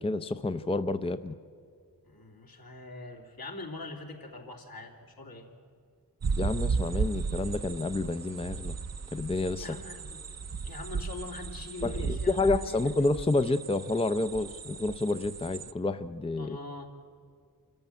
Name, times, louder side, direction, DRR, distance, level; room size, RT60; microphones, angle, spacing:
voice 1, 0.0-1.3 6.4-8.7 9.1-9.7 11.8-16.6, left 2 dB, 15° left, 10 dB, 0.5 m, -29 dB
voice 2, 2.0-5.5 9.6-10.2 10.6-12.8 16.4-16.9, left 2 dB, 70° left, 1 dB, 3.0 m, -43 dB
sound 1, 6.2-15.7, right 5 dB, 45° right, 0.6 m, -35 dB
26.5 x 14.5 x 9.2 m, 2.3 s
wide cardioid pair, 105°, 37 cm